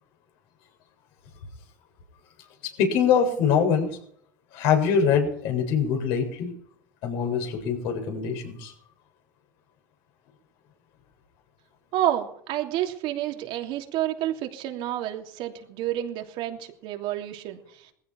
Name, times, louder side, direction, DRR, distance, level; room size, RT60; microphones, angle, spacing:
voice 1, 2.6-3.9 4.5-6.5 7.0-8.7, left 7 dB, 65° left, 3 dB, 7.1 m, -23 dB
voice 2, 11.9-17.9, right 12 dB, 60° right, 4 dB, 3.0 m, -29 dB
20.0 x 15.5 x 4.6 m, 0.66 s
hypercardioid pair, 85°, 10 cm